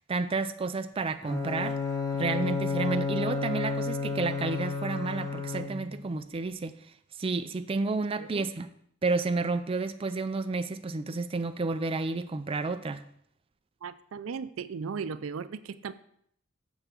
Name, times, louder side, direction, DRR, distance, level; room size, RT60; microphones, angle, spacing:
voice 1, 0.1-1.8 2.2-6.7 7.2-8.7 9.0-13.0, right 3 dB, 25° right, 9 dB, 0.4 m, -31 dB
Bowed string instrument, 1.2-6.1, left 4 dB, 15° left, 0.7 m, -31 dB
voice 2, 13.8-15.9, right 5 dB, 90° right, 13 dB, 0.4 m, -37 dB
6.8 x 5.5 x 6.0 m, 0.68 s
head